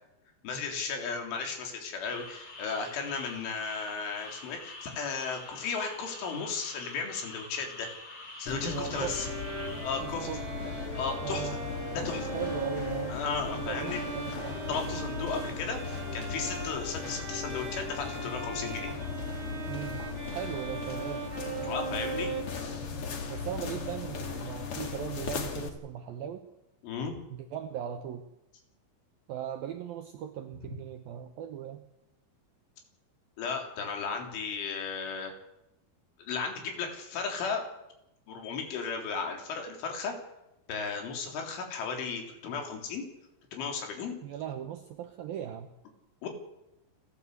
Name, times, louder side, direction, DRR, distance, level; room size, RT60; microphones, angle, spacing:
voice 1, 0.4-7.9 8.4-9.3 9.8-10.3 11.0-11.6 12.0-12.3 13.1-14.0 14.7-18.9 21.6-22.3 26.8-27.2 30.6-30.7 33.4-35.3 36.2-37.6 38.3-40.1 40.7-43.0 43.5-44.2 46.2-46.3, left 5 dB, 80° left, 3 dB, 6.0 m, -35 dB
sound 1, 2.1-10.0, left 2 dB, 25° left, 3.3 m, -46 dB
sound 2, 8.5-25.7, left 5 dB, 50° left, 1.8 m, -37 dB
voice 2, 8.7-9.2 10.0-10.4 11.2-11.6 12.3-13.2 13.7-14.6 19.7-20.0 20.3-21.3 23.3-26.5 27.3-28.2 29.3-31.8 44.2-45.7, right 9 dB, 75° right, 7 dB, 2.2 m, -38 dB
Bowed string instrument, 8.9-22.4, right 4 dB, 30° right, 3.3 m, -39 dB
29.0 x 13.0 x 8.3 m, 0.89 s
omnidirectional pair, 5.5 m